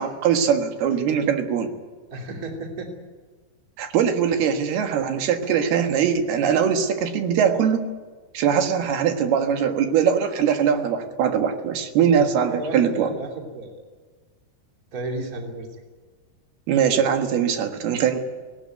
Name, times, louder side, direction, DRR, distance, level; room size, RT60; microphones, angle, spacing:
voice 1, 0.0-1.7 3.8-7.8 8.3-13.1 16.7-18.2, right 8 dB, 80° right, 6 dB, 3.5 m, -21 dB
voice 2, 2.1-2.9 12.1-13.7 14.9-15.7, right 1 dB, 25° right, 2 dB, 3.0 m, -33 dB
19.0 x 18.5 x 9.3 m, 1.4 s
omnidirectional pair, 4.5 m